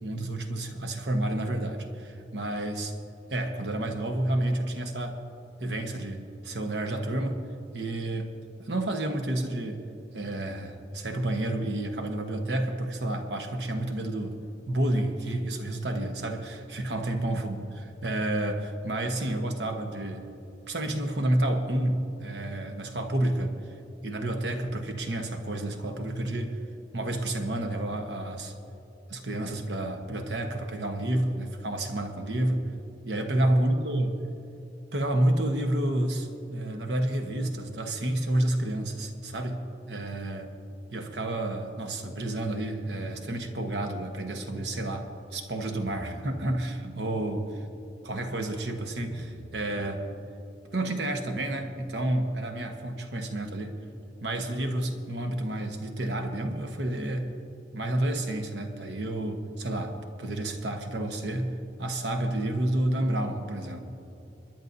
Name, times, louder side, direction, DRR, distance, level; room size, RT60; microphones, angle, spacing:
voice 1, 0.0-3.0 3.3-5.2 5.6-7.4 7.7-8.3 8.6-9.8 10.1-14.4 14.7-17.7 18.0-20.3 20.7-23.6 24.0-26.6 26.9-28.5 29.1-32.6 33.0-34.1 34.9-39.6 39.9-40.5 40.9-47.5 48.0-50.0 50.7-53.7 54.2-57.3 57.7-61.5 61.8-63.8, right 1 dB, 70° right, 5 dB, 1.2 m, -30 dB
29.0 x 10.5 x 2.7 m, 2.9 s
head